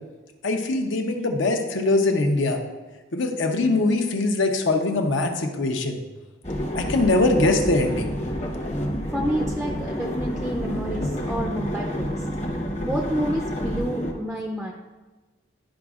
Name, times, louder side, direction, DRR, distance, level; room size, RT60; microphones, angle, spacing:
voice 1, 0.4-2.6 3.1-6.0 6.7-8.1, left 2 dB, 70° left, 4 dB, 0.8 m, -22 dB
sound 1, 6.4-14.1, equal, 35° left, 0.9 m, -29 dB
voice 2, 9.1-12.3 12.8-14.7, equal, ahead, 1 dB, 0.4 m, -29 dB
11.5 x 5.1 x 2.4 m, 1.2 s
head